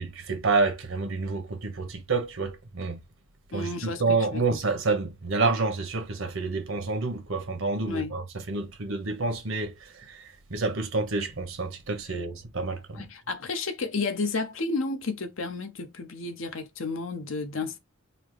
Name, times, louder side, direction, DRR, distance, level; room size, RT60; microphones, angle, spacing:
voice 1, 0.0-3.0 3.5-13.0, right 3 dB, 85° right, 1.1 m, -28 dB
voice 2, 3.5-4.4 7.9-8.1 12.9-17.8, left 3 dB, 80° left, 0.8 m, -32 dB
4.2 x 2.0 x 3.3 m
head